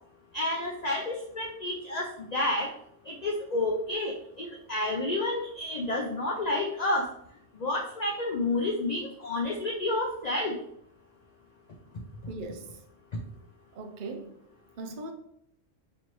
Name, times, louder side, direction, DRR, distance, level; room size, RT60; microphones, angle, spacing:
voice 1, 0.3-2.7 3.1-7.1 7.6-10.6, left 2 dB, 75° left, 0.3 m, -30 dB
voice 2, 12.3-12.8 13.7-14.4 14.8-15.1, right 3 dB, 55° right, 0.6 m, -39 dB
4.3 x 2.9 x 3.0 m
omnidirectional pair, 1.3 m